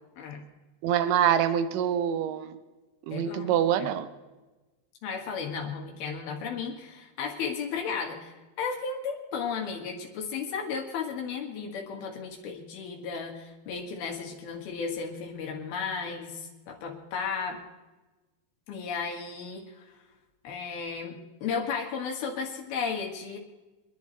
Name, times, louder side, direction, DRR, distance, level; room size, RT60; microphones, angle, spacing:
voice 1, 0.8-2.5 3.1-4.1, right 9 dB, 75° right, 10 dB, 2.3 m, -25 dB
voice 2, 3.1-3.9 5.0-17.6 18.7-19.9 20.4-23.4, left 5 dB, 80° left, 1 dB, 3.8 m, -34 dB
26.5 x 11.0 x 3.2 m, 1.2 s
omnidirectional pair, 4.3 m